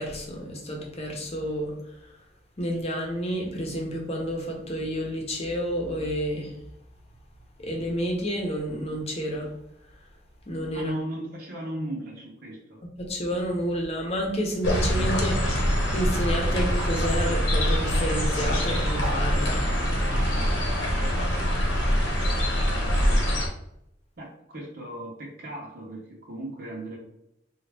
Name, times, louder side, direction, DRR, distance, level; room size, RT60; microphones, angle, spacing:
voice 1, 0.0-1.7 2.6-6.5 7.6-9.5 10.5-10.9 13.0-19.6, equal, 35° left, 0 dB, 0.8 m, -30 dB
voice 2, 10.7-12.8 20.7-21.4 22.7-23.3 24.2-27.0, right 1 dB, 55° right, -3 dB, 0.8 m, -37 dB
sound 1, 14.6-23.5, equal, 75° left, 0.9 m, -24 dB
3.9 x 2.4 x 3.3 m, 0.79 s
head